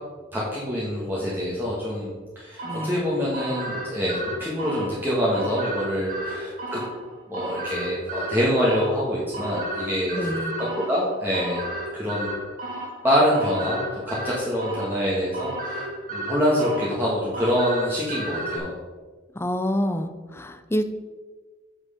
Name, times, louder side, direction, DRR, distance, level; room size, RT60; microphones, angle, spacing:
voice 1, 0.3-6.8 7.3-10.4 10.9-11.6 11.9-12.3 13.0-18.7, equal, 10° right, -7 dB, 1.5 m, -25 dB
voice 2, 2.6-3.0 10.1-10.5 19.4-20.8, equal, 15° left, 8 dB, 0.5 m, -27 dB
sound 1, 2.6-18.6, right 1 dB, 45° right, 1.9 m, -34 dB
7.5 x 6.3 x 5.0 m, 1.4 s
head